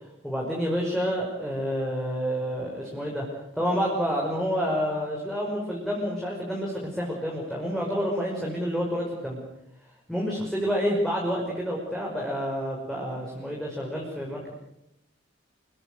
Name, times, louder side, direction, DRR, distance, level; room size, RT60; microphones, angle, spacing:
voice 1, 0.2-3.3 3.5-9.4 10.1-14.5, equal, ahead, -3 dB, 5.6 m, -28 dB
28.5 x 23.5 x 6.8 m, 0.84 s
head